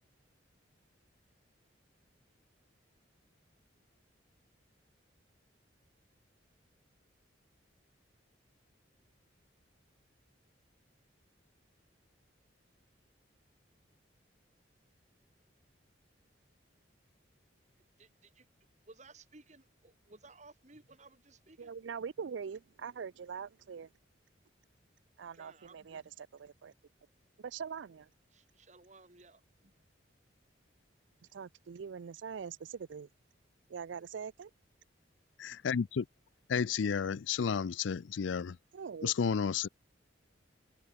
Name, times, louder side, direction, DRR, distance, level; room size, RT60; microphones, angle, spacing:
voice 1, 18.0-18.5 18.9-21.8 25.3-26.1 28.3-29.7, right 3 dB, 40° right, 2.3 m, -58 dB
voice 2, 21.6-23.9 25.2-26.7 27.4-28.1 31.3-33.1 33.7-34.5 38.7-39.1, right 6 dB, 75° right, 0.4 m, -43 dB
voice 3, 35.4-36.1 36.5-38.6 39.0-39.7, left 6 dB, 80° left, 0.4 m, -32 dB
head